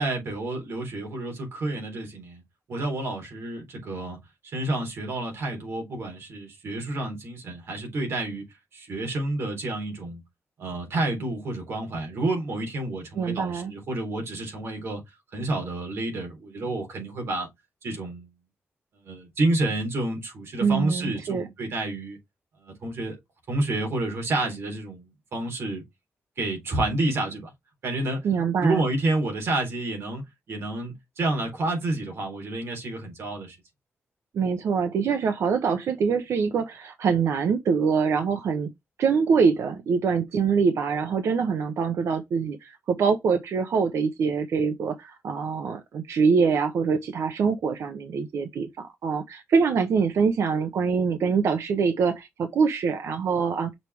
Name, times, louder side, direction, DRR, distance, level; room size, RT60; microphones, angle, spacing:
voice 1, 0.0-2.4 2.7-4.2 4.4-8.5 8.7-10.2 10.6-15.0 15.3-17.5 17.8-18.3 18.9-22.2 22.6-23.2 23.5-25.8 26.4-27.5 27.8-28.3 28.6-33.6, right 2 dB, 60° right, 3.9 m, -29 dB
voice 2, 13.2-13.7 20.6-21.5 28.2-28.8 34.3-38.7 39.0-53.7, right 5 dB, 80° right, 0.9 m, -24 dB
6.5 x 4.7 x 3.5 m
wide cardioid pair, 165°, 5 cm